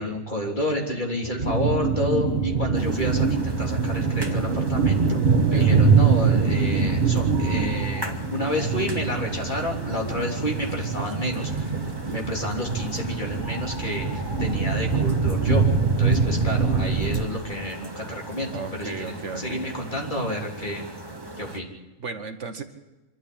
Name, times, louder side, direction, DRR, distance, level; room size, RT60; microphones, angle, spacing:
voice 1, 0.0-5.2 5.5-15.6 16.0-18.5 18.8-18.9 19.3-20.8 21.4-21.7, left 1 dB, 35° left, 0 dB, 3.5 m, -30 dB
sound 1, 1.4-17.2, right 5 dB, 35° right, 1.7 m, -23 dB
sound 2, 2.7-21.6, right 1 dB, 15° right, 1.7 m, -39 dB
voice 2, 16.0-16.4 18.5-19.6 21.5-21.6 22.0-22.6, right 4 dB, 60° right, 8 dB, 1.6 m, -35 dB
25.0 x 13.0 x 8.6 m, 1.1 s
omnidirectional pair, 1.4 m